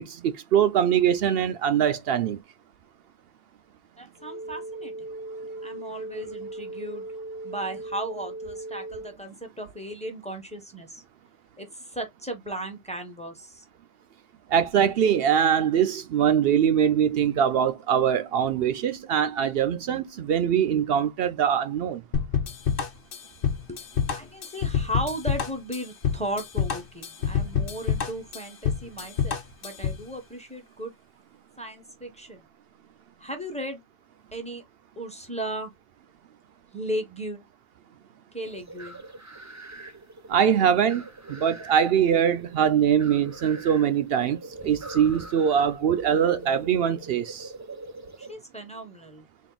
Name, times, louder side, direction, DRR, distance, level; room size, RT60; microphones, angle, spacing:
voice 1, 0.0-2.4 14.5-22.0 40.3-41.0 41.3-47.5, right 8 dB, 70° right, 0.7 m, -23 dB
voice 2, 4.0-4.9 5.6-7.0 7.4-11.0 11.6-13.6 23.7-30.9 31.6-32.4 33.2-33.8 34.3-34.6 35.0-35.7 36.7-37.5 38.3-39.0 48.2-49.3, right 1 dB, 5° left, 0.9 m, -36 dB
sound 1, 4.2-9.2, right 2 dB, 40° left, 0.5 m, -38 dB
sound 2, 22.1-30.0, left 7 dB, 60° left, 0.9 m, -27 dB
sound 3, 38.4-48.3, right 2 dB, 20° right, 0.6 m, -43 dB
3.6 x 2.5 x 3.8 m
omnidirectional pair, 1.1 m